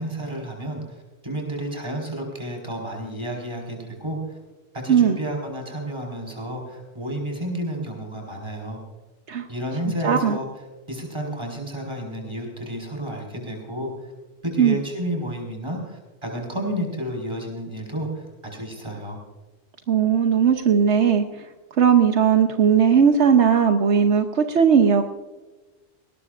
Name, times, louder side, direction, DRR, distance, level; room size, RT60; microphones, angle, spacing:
voice 1, 0.0-4.4 4.7-8.8 9.5-10.5 10.9-14.1 14.4-19.2, right 1 dB, 25° right, 0 dB, 4.8 m, -31 dB
voice 2, 10.0-10.4 14.6-14.8 19.9-21.4 21.8-25.0, right 7 dB, 75° right, 6 dB, 1.2 m, -18 dB
19.5 x 19.0 x 2.5 m, 1.2 s
omnidirectional pair, 1.2 m